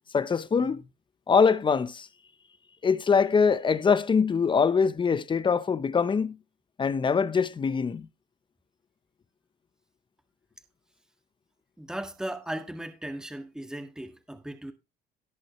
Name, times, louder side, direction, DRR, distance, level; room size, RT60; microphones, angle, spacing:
voice 1, 0.1-0.8 1.3-2.1 2.8-6.3 6.8-8.1, left 5 dB, 30° left, 0.9 m, -23 dB
voice 2, 11.8-14.7, right 1 dB, 5° right, 1.8 m, -37 dB
18.0 x 6.3 x 3.2 m
cardioid pair, 110°, 17 cm